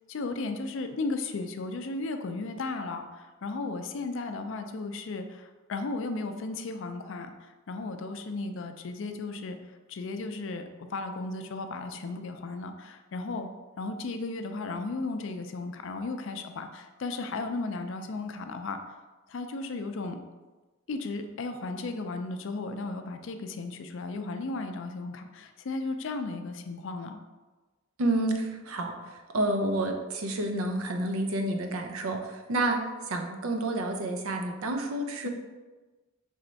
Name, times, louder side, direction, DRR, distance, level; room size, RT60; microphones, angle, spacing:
voice 1, 0.1-9.6 9.9-13.5 13.8-18.8 19.3-20.2 20.9-27.2, left 3 dB, 65° left, 7 dB, 0.4 m, -35 dB
voice 2, 28.0-32.8 33.1-35.3, right 1 dB, 90° right, 4 dB, 0.6 m, -29 dB
3.4 x 3.2 x 3.9 m, 1.2 s
head